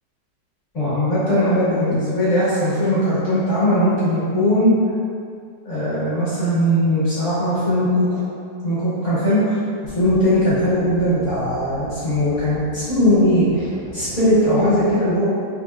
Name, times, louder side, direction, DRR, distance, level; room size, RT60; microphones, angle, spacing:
voice 1, 0.7-4.7 5.6-8.2 8.6-9.6 9.9-13.7 13.9-15.3, equal, 45° left, -12 dB, 1.7 m, -19 dB
sound 1, 9.8-15.0, right 1 dB, 70° right, 0.7 m, -38 dB
4.3 x 2.8 x 2.2 m, 2.3 s
omnidirectional pair, 1.9 m